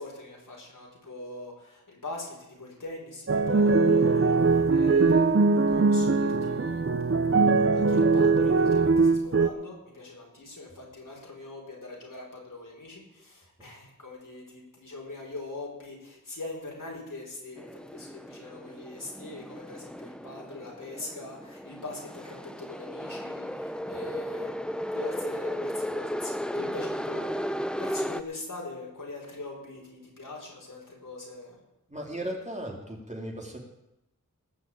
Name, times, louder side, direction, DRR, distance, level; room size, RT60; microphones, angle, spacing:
voice 1, 0.0-6.9 7.3-24.5 24.9-31.6, left 2 dB, 80° left, -1 dB, 5.3 m, -42 dB
sound 1, 3.3-9.5, right 4 dB, 45° right, 0.9 m, -21 dB
sound 2, 17.6-28.2, equal, 5° left, 0.7 m, -35 dB
voice 2, 31.9-33.6, right 1 dB, 20° right, 0 dB, 3.4 m, -36 dB
19.0 x 6.5 x 8.7 m, 0.92 s
wide cardioid pair, 60°, 32 cm